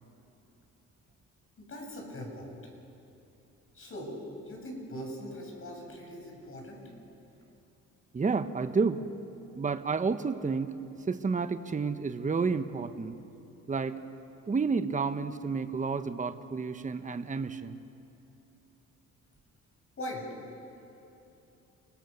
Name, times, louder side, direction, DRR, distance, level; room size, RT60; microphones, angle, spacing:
voice 1, 1.6-2.5 3.7-4.2 4.5-6.8 20.0-20.2, equal, 45° left, 0 dB, 7.9 m, -41 dB
voice 2, 8.1-9.0 9.5-13.2 13.7-14.0 14.5-17.8, right 4 dB, 25° right, 10 dB, 1.1 m, -30 dB
29.5 x 21.0 x 7.1 m, 2.9 s
cardioid pair, 90°, 30 cm